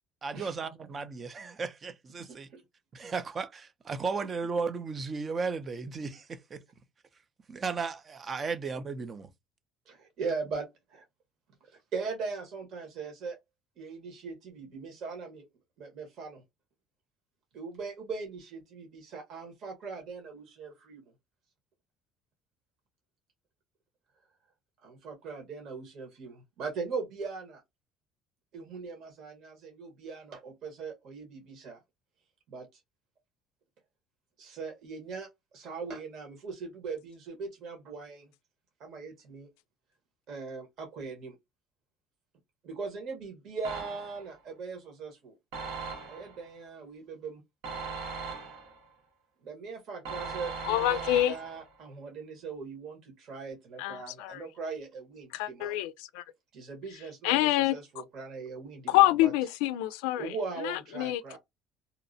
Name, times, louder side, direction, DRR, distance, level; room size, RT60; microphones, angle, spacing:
voice 1, 0.2-2.5 2.9-6.6 7.5-9.3, right 4 dB, 35° right, 0.5 m, -35 dB
voice 2, 9.9-11.0 11.7-13.4 13.8-15.4 15.8-16.4 17.5-21.0 24.8-27.6 28.5-31.8 32.5-32.7 34.4-38.3 38.8-39.5 40.3-41.4 42.6-45.4 46.1-47.4 49.4-55.8 56.5-59.3 60.2-61.4, right 4 dB, 60° right, 1.3 m, -40 dB
sound 1, 43.6-44.3 45.5-46.4 47.6-48.8 50.0-51.7, right 4 dB, 85° right, 1.1 m, -39 dB
voice 3, 50.6-51.4 53.8-54.4 55.3-56.2 57.2-57.8 58.9-60.3 60.6-61.4, left 15 dB, 90° left, 0.3 m, -27 dB
2.8 x 2.1 x 2.6 m
supercardioid pair, 100°, 0 cm